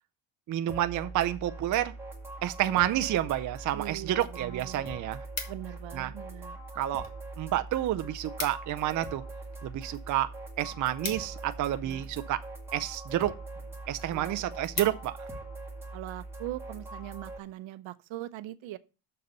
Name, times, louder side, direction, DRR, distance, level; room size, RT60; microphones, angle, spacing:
voice 1, 0.5-1.9 2.4-5.2 5.9-6.1 6.7-7.1 7.4-9.2 9.6-10.3 10.6-12.4 12.7-13.3 13.9-15.3, right 13 dB, 40° right, 0.5 m, -29 dB
sound 1, 0.7-17.4, right 2 dB, 5° right, 1.8 m, -42 dB
voice 2, 3.7-5.0 5.5-6.6 11.8-12.0 14.1-14.5 15.9-18.8, right 15 dB, 70° right, 0.8 m, -41 dB
sound 2, 4.2-4.3 4.6-5.9 6.6-7.2 7.5-7.6 7.8-7.9 8.2-8.8 9.1-12.0 12.7-13.1 13.6-13.7 14.0-14.1 14.4-15.4 15.8-16.1, left 4 dB, 35° left, 1.5 m, -40 dB
6.7 x 6.7 x 5.5 m
cardioid pair, 170°, 49 cm